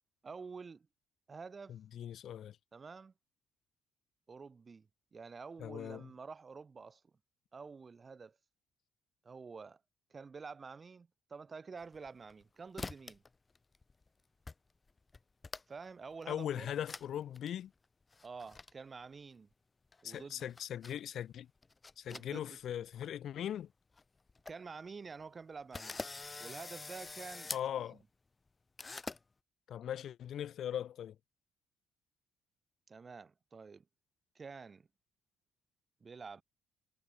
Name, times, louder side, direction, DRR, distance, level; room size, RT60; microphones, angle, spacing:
voice 1, 0.2-0.9 1.3-1.8 2.7-3.1 4.3-7.0 7.5-8.4 9.2-9.8 10.1-13.2 15.7-16.7 18.2-19.5 20.0-20.5 22.1-22.6 24.5-26.0 26.4-28.0 32.9-33.8 34.3-34.9 36.0-36.4, right 5 dB, 35° right, 3.1 m, -49 dB
voice 2, 1.7-2.6 5.6-6.1 16.3-17.7 20.0-21.5 22.0-23.7 27.5-28.0 29.7-31.2, left 10 dB, 65° left, 2.8 m, -40 dB
sound 1, 11.8-12.4 12.8-13.3 13.5-14.1 14.5-14.6 14.9-15.9 16.2-16.3 16.9-17.1 17.3-17.5 18.1-18.7 19.9-21.0 21.6-22.7 22.9-23.1 23.6-23.7 24.0-24.1 24.3-24.5 25.0-25.1 25.7-27.7 28.8-29.2, left 3 dB, 30° left, 4.2 m, -45 dB
supercardioid pair, 60°, 0 cm